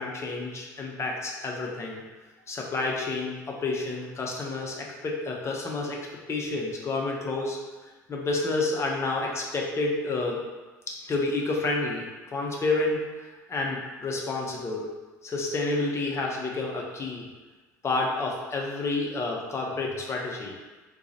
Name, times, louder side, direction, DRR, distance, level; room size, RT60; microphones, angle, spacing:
voice 1, 0.0-2.0 2.5-6.0 6.3-7.6 8.1-10.4 10.9-14.9 15.2-17.3 17.8-20.6, left 2 dB, 25° left, -1 dB, 0.7 m, -29 dB
2.8 x 2.3 x 3.9 m, 1.2 s
figure-of-eight pair, 60°, 10 cm